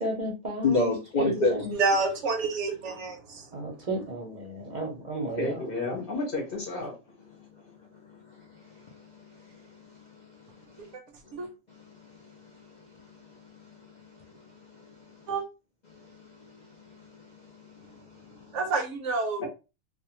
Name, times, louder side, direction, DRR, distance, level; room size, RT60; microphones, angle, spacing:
voice 1, 0.0-0.9 1.2-1.7 3.5-5.6, right 1 dB, 45° right, 0.6 m, -33 dB
voice 2, 0.6-1.7 8.3-10.0 10.5-10.9 11.4-14.4 14.7-15.0 15.9-18.4, left 3 dB, 85° left, 0.4 m, -33 dB
voice 3, 1.7-3.5 11.3-11.5 15.3-15.4 18.5-19.5, right 3 dB, 70° right, 0.8 m, -28 dB
voice 4, 5.4-7.0 19.4-19.5, left 3 dB, 50° left, 0.8 m, -32 dB
2.4 x 2.2 x 2.9 m
omnidirectional pair, 1.4 m